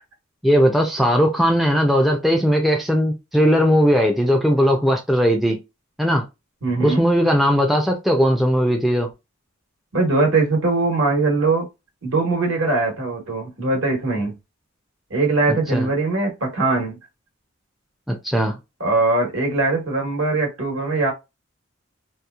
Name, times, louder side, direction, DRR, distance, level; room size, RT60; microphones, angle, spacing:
voice 1, 0.4-5.6 6.0-6.2 6.8-9.1 15.7-15.9 18.1-18.6, equal, ahead, 0.3 m, -18 dB
voice 2, 6.6-7.0 9.9-11.7 12.0-14.4 15.1-17.0 18.8-21.1, right 3 dB, 70° right, 1.2 m, -21 dB
2.9 x 2.3 x 2.2 m
head